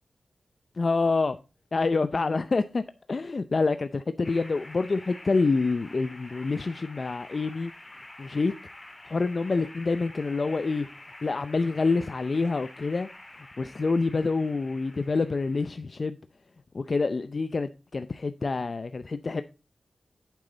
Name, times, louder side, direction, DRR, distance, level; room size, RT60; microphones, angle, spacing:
voice 1, 0.8-1.4 1.7-2.8 3.1-7.7 8.2-8.5 9.0-10.9 11.2-13.1 13.6-16.2 16.7-19.4, left 3 dB, 45° left, 0.5 m, -27 dB
sound 1, 4.2-15.7, left 1 dB, 25° left, 1.9 m, -47 dB
9.1 x 7.5 x 3.9 m
wide cardioid pair, 90°, 0 cm